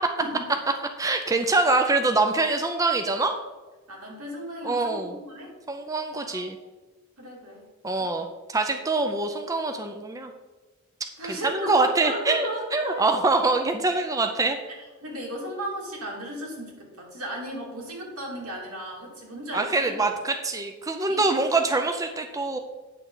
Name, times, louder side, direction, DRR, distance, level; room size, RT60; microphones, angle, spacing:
voice 1, 0.2-0.5 1.6-1.7 3.9-5.5 6.3-6.7 7.2-7.7 8.0-8.1 11.2-13.1 15.0-20.1 21.1-21.2, right 1 dB, 90° right, -2 dB, 2.6 m, -36 dB
voice 2, 1.0-3.3 4.6-5.2 5.7-6.6 7.8-10.3 11.2-14.6 19.5-22.6, right 3 dB, 15° right, 5 dB, 0.5 m, -24 dB
9.1 x 6.4 x 3.9 m, 1.2 s
head